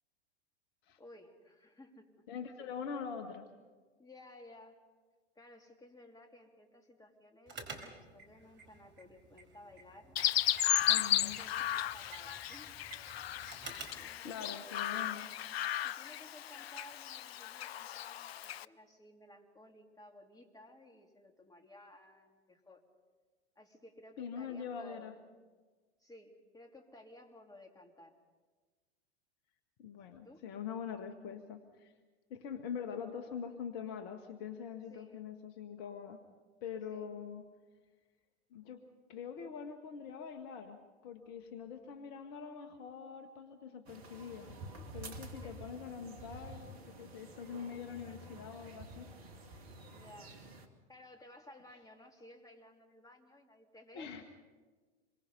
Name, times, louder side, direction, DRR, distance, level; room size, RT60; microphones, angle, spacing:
voice 1, 1.0-2.3 4.0-4.8 5.3-10.2 11.2-12.7 14.0-15.3 15.8-22.8 23.5-25.2 26.0-28.2 30.1-30.4 34.9-35.2 36.9-37.1 45.4-45.5 49.9-50.4 50.9-54.2, left 1 dB, 10° left, 3 dB, 3.0 m, -57 dB
voice 2, 2.3-3.5 10.9-11.4 13.0-13.3 13.7-15.3 24.2-25.1 29.8-31.9 32.3-36.2 36.6-37.4 38.5-38.8 39.1-40.8 41.0-44.6 44.9-49.1 53.9-54.2, left 7 dB, 45° left, 7 dB, 1.8 m, -44 dB
sound 1, 7.5-14.1, right 4 dB, 35° right, 4.8 m, -51 dB
Chirp tweet, 10.2-18.7, left 11 dB, 65° left, 0.6 m, -35 dB
sound 2, 43.9-50.7, right 2 dB, 65° right, 2.5 m, -50 dB
27.0 x 23.5 x 5.6 m, 1.4 s
figure-of-eight pair, 90°, 34 cm